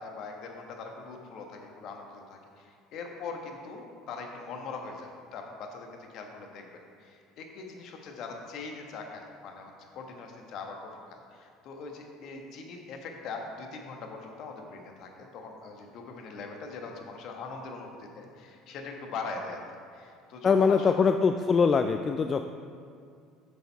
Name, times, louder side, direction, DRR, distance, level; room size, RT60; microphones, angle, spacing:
voice 1, 0.0-6.7 7.0-19.6 19.9-21.1, left 4 dB, 55° left, 2 dB, 1.3 m, -41 dB
voice 2, 20.4-22.4, left 5 dB, 35° left, 8 dB, 0.4 m, -23 dB
8.4 x 6.9 x 4.6 m, 2.3 s
hypercardioid pair, 70°, 0 cm